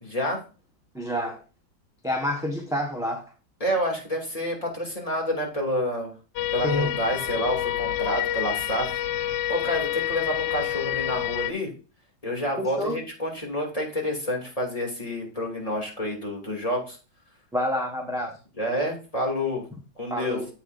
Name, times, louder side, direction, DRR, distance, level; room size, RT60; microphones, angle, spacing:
voice 1, 0.0-0.4 3.6-6.1 6.5-9.0 9.5-11.7 12.2-17.0 18.6-19.6 20.0-20.4, equal, 20° left, 2.6 m, -28 dB
voice 2, 0.9-1.4 2.0-3.3 6.6-6.9 12.6-13.0 17.5-18.3 20.1-20.5, left 1 dB, ahead, 0.9 m, -28 dB
sound 1, 6.4-11.5, left 12 dB, 70° left, 1.2 m, -28 dB
10.0 x 7.7 x 2.5 m
omnidirectional pair, 2.0 m